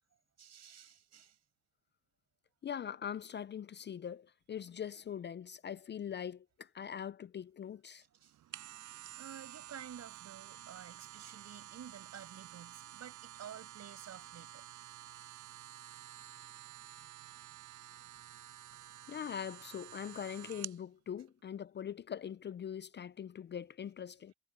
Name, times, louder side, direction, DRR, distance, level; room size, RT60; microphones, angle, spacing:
voice 1, 0.4-1.3 8.2-8.3 9.2-14.6, right 9 dB, 60° right, 6.5 m, -51 dB
voice 2, 2.6-8.0 19.1-24.3, left 8 dB, 35° left, 0.4 m, -42 dB
sound 1, 8.2-20.8 21.3-21.4, right 13 dB, 80° right, 6.4 m, -51 dB
cardioid pair, 90°, 30 cm